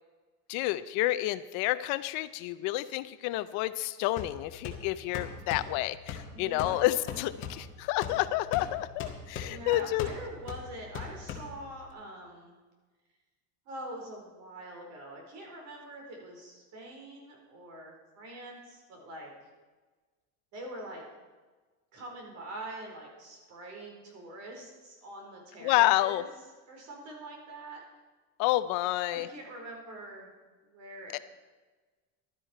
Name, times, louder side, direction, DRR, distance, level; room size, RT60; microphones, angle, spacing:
voice 1, 0.5-10.1 25.6-26.2 28.4-29.3 31.1-31.2, left 16 dB, 55° left, 13 dB, 0.5 m, -29 dB
sound 1, 4.2-11.9, left 6 dB, 35° left, 1.8 m, -41 dB
voice 2, 6.3-6.8 9.5-12.6 13.7-19.3 20.5-21.0 21.9-26.3 26.7-27.8 29.1-30.3 30.7-31.2, right 1 dB, 50° right, 0 dB, 4.4 m, -44 dB
15.0 x 12.5 x 4.5 m, 1.3 s
cardioid pair, 165°, 36 cm